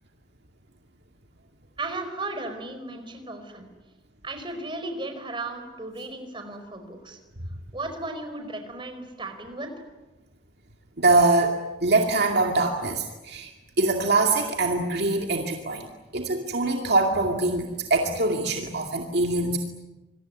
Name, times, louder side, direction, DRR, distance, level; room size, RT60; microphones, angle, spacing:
voice 1, 1.8-3.6 4.2-7.2 7.7-9.7, right 2 dB, 25° right, 6 dB, 4.9 m, -35 dB
voice 2, 11.0-13.5 13.8-15.9 16.1-19.6, right 2 dB, 55° right, 2 dB, 2.3 m, -23 dB
27.0 x 22.5 x 9.7 m, 1.1 s
head